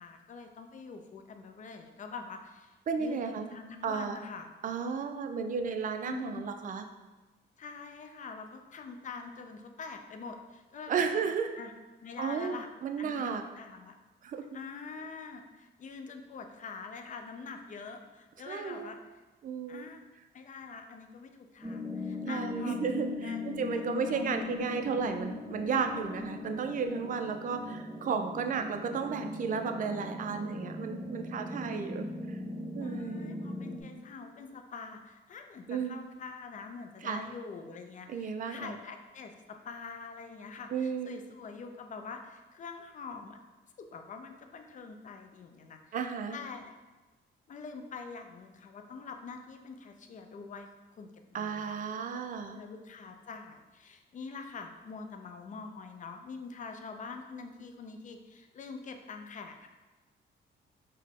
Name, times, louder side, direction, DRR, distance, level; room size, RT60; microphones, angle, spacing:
voice 1, 0.0-3.2 3.5-4.5 6.0-6.5 7.6-11.2 11.5-11.7 12.0-12.7 13.0-13.9 14.5-19.0 19.7-20.0 20.3-22.9 23.2-23.4 23.7-24.3 32.8-43.4 43.8-46.0 46.3-46.7 47.5-51.8 52.5-59.7, left 5 dB, 40° left, 5 dB, 0.4 m, -45 dB
voice 2, 2.9-3.5 3.8-4.2 4.6-6.8 10.9-11.5 12.2-13.4 14.2-14.5 18.4-18.9 19.4-19.8 22.2-32.4 32.7-33.4 35.7-36.0 37.0-37.3 38.1-38.8 40.7-41.2 45.9-46.4 51.3-52.6, right 6 dB, 40° right, 6 dB, 0.4 m, -33 dB
sound 1, 21.6-33.8, left 2 dB, ahead, 0.9 m, -39 dB
3.8 x 2.1 x 3.5 m, 1.2 s
cardioid pair, 90°, 20 cm